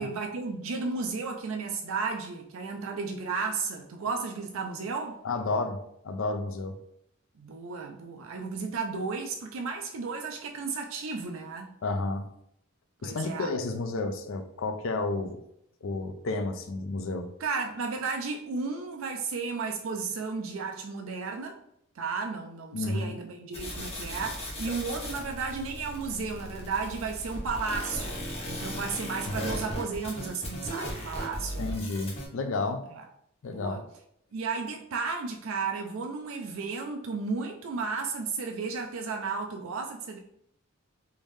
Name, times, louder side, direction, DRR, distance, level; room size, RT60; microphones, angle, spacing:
voice 1, 0.0-5.2 7.4-11.7 13.0-13.5 17.4-21.6 22.0-31.7 32.9-33.0 33.5-33.8 34.3-40.2, right 4 dB, 65° right, 3 dB, 0.4 m, -33 dB
voice 2, 5.2-5.8 6.0-6.8 11.8-12.3 13.0-15.4 15.8-17.3 22.7-23.2 29.3-29.7 31.6-32.8 33.4-33.8, left 3 dB, 65° left, 8 dB, 0.4 m, -31 dB
sound 1, 23.5-32.3, equal, 30° left, 1.0 m, -37 dB
3.5 x 2.6 x 3.2 m, 0.73 s
head